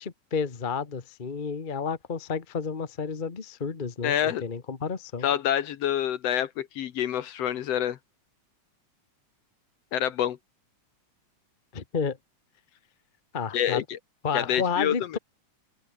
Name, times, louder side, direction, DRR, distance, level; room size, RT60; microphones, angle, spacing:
voice 1, 0.0-5.3 11.7-12.2 13.3-13.8 14.2-15.2, left 5 dB, 40° left, 0.7 m, -31 dB
voice 2, 4.0-4.4 5.2-8.0 9.9-10.4 13.5-14.0 14.3-14.9, left 10 dB, 65° left, 1.9 m, -27 dB
omnidirectional pair, 3.5 m